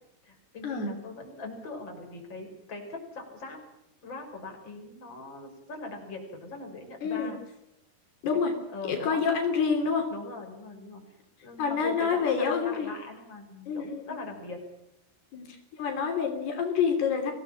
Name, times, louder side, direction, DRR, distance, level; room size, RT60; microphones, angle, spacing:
voice 1, 0.2-3.6 4.0-7.4 8.5-9.2 10.1-11.0 11.4-14.6, left 3 dB, 25° left, 3 dB, 6.2 m, -41 dB
voice 2, 7.0-7.3 8.2-8.5 8.9-10.1 11.6-12.9 13.7-14.0 15.3-17.3, left 6 dB, 75° left, 4 dB, 5.2 m, -27 dB
25.0 x 18.0 x 7.5 m, 0.88 s
omnidirectional pair, 4.7 m